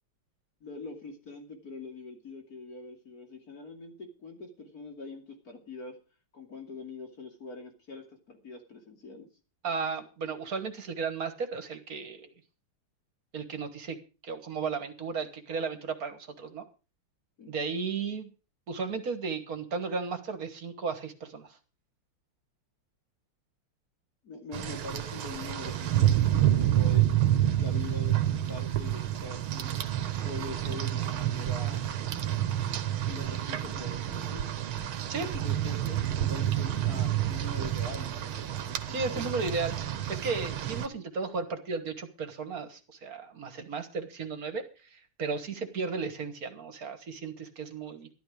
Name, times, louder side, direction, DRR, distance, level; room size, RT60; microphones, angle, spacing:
voice 1, 0.6-6.0 6.3-9.3 17.4-17.5 24.2-27.1 27.6-29.8 30.2-31.8 33.0-34.5 35.2-39.5 45.5-45.6, left 3 dB, 45° left, 3 dB, 3.0 m, -44 dB
voice 2, 9.6-12.3 13.3-14.0 14.2-16.6 17.5-18.3 18.7-21.5 35.1-35.3 38.9-48.1, right 4 dB, 45° right, 8 dB, 1.8 m, -34 dB
Rain, 24.5-40.9, right 12 dB, 75° right, 1.8 m, -29 dB
12.5 x 12.5 x 5.0 m, 0.33 s
omnidirectional pair, 2.4 m